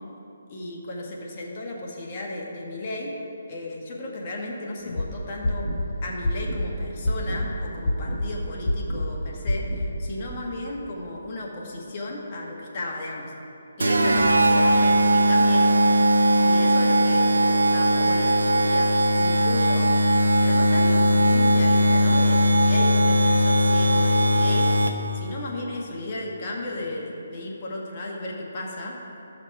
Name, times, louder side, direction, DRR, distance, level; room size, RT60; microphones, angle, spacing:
voice 1, 0.5-3.1 3.5-5.7 6.0-13.3 13.8-15.9 16.4-19.9 20.4-24.7 25.1-29.0, left 1 dB, 35° left, -2 dB, 1.4 m, -34 dB
sound 1, 4.8-5.0 5.4-5.9 6.2-6.7 7.0-7.5 7.8-8.3 8.6-9.1 9.5-9.9, left 1 dB, 50° left, 1.2 m, -26 dB
sound 2, 13.8-25.2, equal, 90° right, 0.8 m, -19 dB
13.5 x 5.8 x 4.7 m, 2.9 s
hypercardioid pair, 165°, 0 cm